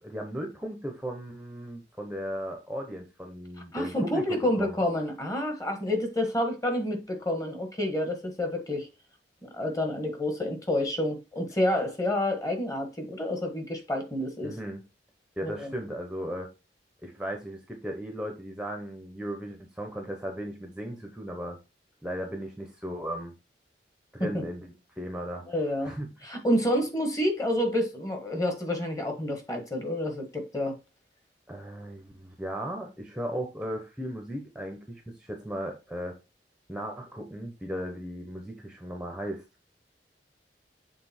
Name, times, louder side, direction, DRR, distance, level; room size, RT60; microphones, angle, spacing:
voice 1, 0.0-4.8 14.4-14.8 15.4-16.5 17.0-21.6 22.0-23.3 24.1-25.4 25.8-26.2 31.5-36.1 36.7-39.4, equal, 5° right, 0.8 m, -36 dB
voice 2, 3.7-8.9 9.4-14.6 15.4-15.7 24.2-24.4 25.5-25.9 26.2-30.8, left 1 dB, 20° left, 1.4 m, -29 dB
6.9 x 3.7 x 4.2 m
head